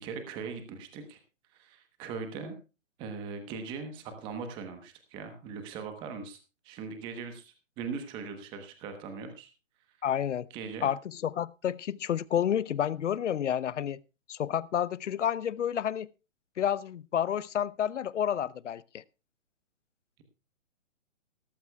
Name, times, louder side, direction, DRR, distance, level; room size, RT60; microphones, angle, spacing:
voice 1, 0.0-1.2 1.5-2.5 3.0-6.4 6.6-9.5 10.5-10.9, right 5 dB, 10° right, 7 dB, 1.0 m, -40 dB
voice 2, 10.0-10.5 10.8-14.0 14.3-16.1 16.6-19.0, left 9 dB, 65° left, 21 dB, 0.7 m, -30 dB
18.5 x 13.0 x 2.3 m, 0.30 s
hypercardioid pair, 155°, 38 cm